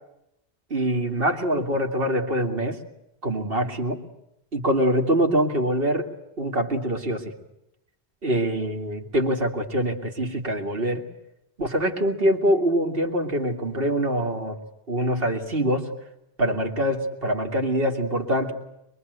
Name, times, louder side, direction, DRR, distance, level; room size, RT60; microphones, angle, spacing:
voice 1, 0.7-2.8 3.2-4.0 4.5-6.1 6.4-7.3 8.2-11.0 11.6-14.6 14.9-15.9 16.4-18.5, equal, 60° right, 3 dB, 2.5 m, -24 dB
24.0 x 22.5 x 8.0 m, 0.87 s
omnidirectional pair, 1.1 m